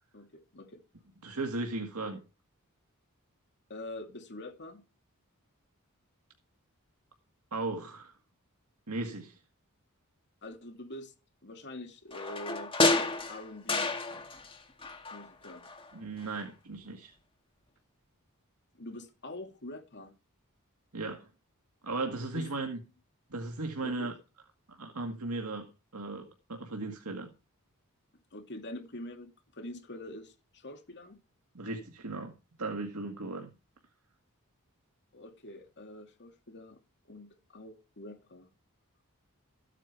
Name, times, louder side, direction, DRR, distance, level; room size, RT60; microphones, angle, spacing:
voice 1, 0.1-0.8 3.7-4.8 10.4-11.1 11.4-12.8 13.3-13.9 15.1-15.6 18.7-20.2 22.3-22.7 23.8-24.1 28.3-31.2 35.1-36.8 37.1-38.5, left 1 dB, 50° left, 2.7 m, -45 dB
voice 2, 1.2-2.2 7.5-8.2 8.9-9.4 15.9-17.1 20.9-21.3 21.8-22.8 23.3-24.1 24.7-25.7 25.9-27.3 31.5-33.5, right 3 dB, 80° right, 2.0 m, -36 dB
sound 1, 12.1-14.6 14.8-15.9 16.2-16.3, left 3 dB, 25° left, 2.0 m, -30 dB
14.5 x 8.9 x 4.6 m
head